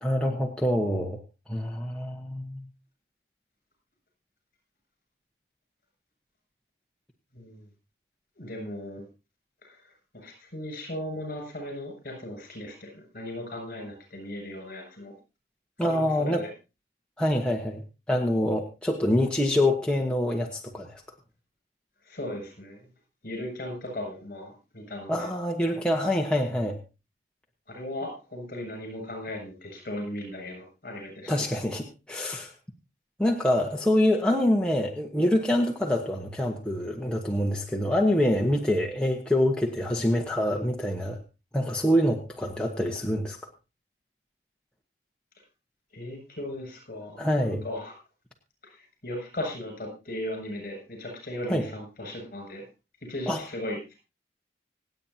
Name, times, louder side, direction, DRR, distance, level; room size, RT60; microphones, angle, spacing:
voice 1, 0.0-1.2 1.5-2.6 15.8-16.4 17.2-17.8 18.1-21.0 25.1-26.8 31.3-32.5 33.2-41.2 41.5-43.4 47.2-47.6 51.5-51.6 53.3-53.4, left 1 dB, 5° left, 0 dB, 1.1 m, -25 dB
voice 2, 7.3-7.6 8.4-9.0 9.6-9.8 10.1-15.1 15.9-16.5 22.1-22.9 23.2-25.3 27.7-31.3 45.9-47.9 48.6-52.6 53.1-53.9, left 1 dB, 50° left, 3 dB, 7.4 m, -37 dB
26.0 x 8.9 x 2.8 m, 0.29 s
head